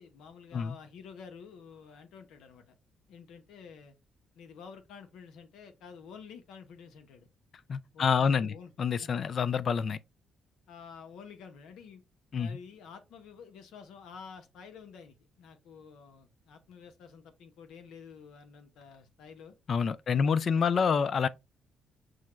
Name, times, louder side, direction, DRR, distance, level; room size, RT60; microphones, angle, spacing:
voice 1, 0.0-2.6 3.1-3.9 4.3-7.3 7.9-8.7 9.0-9.2 10.7-12.0 12.4-19.6 20.1-20.9, left 6 dB, 85° left, 0.8 m, -50 dB
voice 2, 7.7-10.0 12.3-12.6 19.7-21.3, left 6 dB, 55° left, 0.4 m, -27 dB
6.2 x 2.2 x 3.0 m
cardioid pair, 90°, 0 cm